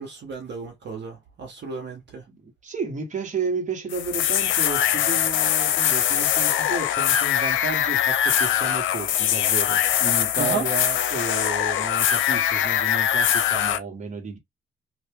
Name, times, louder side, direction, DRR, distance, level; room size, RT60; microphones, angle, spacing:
voice 1, 0.0-2.3 4.8-4.9 10.4-10.7, right 4 dB, 60° right, 1.0 m, -33 dB
voice 2, 2.4-14.4, right 5 dB, 40° right, 1.2 m, -32 dB
sound 1, 3.9-13.8, left 10 dB, 75° left, 0.5 m, -22 dB
2.9 x 2.4 x 3.5 m
cardioid pair, 90°, 20 cm